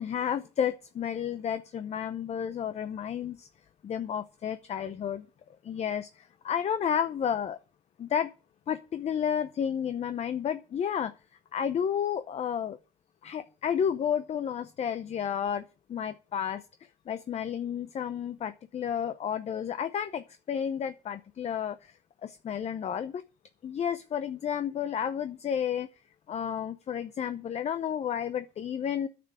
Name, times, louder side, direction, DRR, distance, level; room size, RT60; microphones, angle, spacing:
voice 1, 0.0-3.5 3.8-5.3 5.6-7.6 8.0-8.3 8.7-11.1 11.5-12.8 13.2-23.2 23.6-25.9 26.3-29.1, left 8 dB, 40° left, 12 dB, 0.7 m, -31 dB
9.8 x 6.9 x 9.1 m, 0.35 s
cardioid pair, 110°, 17 cm